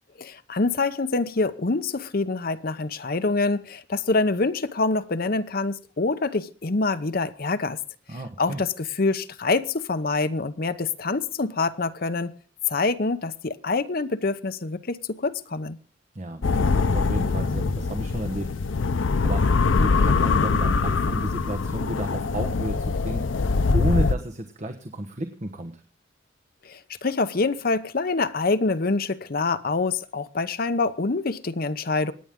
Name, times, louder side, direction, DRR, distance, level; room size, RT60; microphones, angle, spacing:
voice 1, 0.2-7.8 8.4-12.3 12.7-15.8 26.6-32.1, left 3 dB, 50° left, 0.8 m, -26 dB
voice 2, 8.1-8.6 16.1-18.8 19.2-19.4 19.7-23.4 23.7-25.8, right 1 dB, 40° right, 1.1 m, -32 dB
sound 1, 16.4-24.1, left 4 dB, 85° left, 0.6 m, -23 dB
25.0 x 9.2 x 3.7 m
head